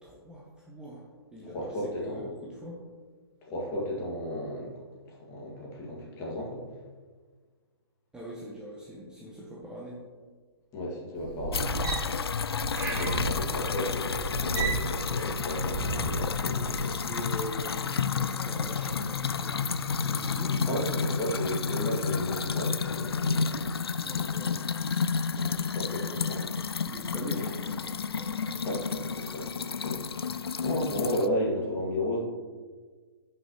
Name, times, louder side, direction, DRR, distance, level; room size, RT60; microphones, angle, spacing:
voice 1, 0.0-1.1 1.3-2.8 8.1-10.0 12.8-13.3 17.0-21.1 24.0-24.6 26.8-28.7, right 1 dB, 5° right, -5 dB, 0.9 m, -42 dB
voice 2, 1.5-2.3 3.5-4.8 5.1-6.6 10.7-11.7 12.9-17.0 20.7-23.8 25.4-26.9 27.3-27.5 28.6-32.2, equal, 25° left, -4 dB, 2.0 m, -34 dB
sound 1, 11.2-16.9 17.3-17.6, right 2 dB, 45° right, 2.0 m, -33 dB
sound 2, 11.5-31.3, left 5 dB, 70° left, 0.4 m, -31 dB
10.5 x 5.7 x 3.0 m, 1.5 s
figure-of-eight pair, 125°, 13 cm